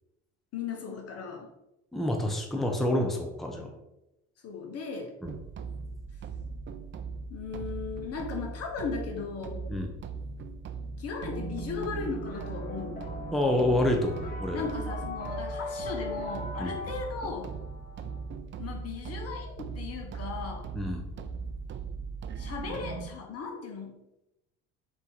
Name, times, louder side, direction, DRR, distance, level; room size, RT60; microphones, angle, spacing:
voice 1, 0.5-1.5 3.5-3.7 4.4-5.1 7.3-9.7 11.0-13.0 14.5-17.5 18.6-20.7 22.4-24.0, left 5 dB, 50° left, 2 dB, 1.2 m, -37 dB
voice 2, 1.9-3.7 5.2-5.3 9.7-9.9 13.3-14.7 16.6-16.8 20.7-21.0, left 1 dB, ahead, 2 dB, 0.7 m, -28 dB
sound 1, 5.2-23.1, right 4 dB, 40° right, 0.5 m, -39 dB
sound 2, 11.2-18.2, left 1 dB, 25° left, 1.4 m, -40 dB
4.1 x 3.1 x 3.9 m, 0.89 s
hypercardioid pair, 65°, 31 cm